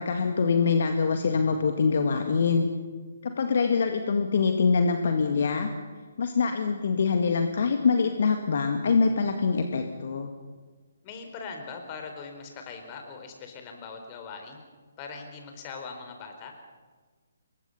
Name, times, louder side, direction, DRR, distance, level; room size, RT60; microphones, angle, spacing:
voice 1, 0.0-2.7 3.2-5.7 6.2-10.3, left 5 dB, 50° left, 5 dB, 1.9 m, -24 dB
voice 2, 11.0-14.6 15.0-16.5, left 5 dB, 25° left, 5 dB, 4.3 m, -41 dB
27.0 x 23.0 x 5.7 m, 1.4 s
figure-of-eight pair, 135°, 0 cm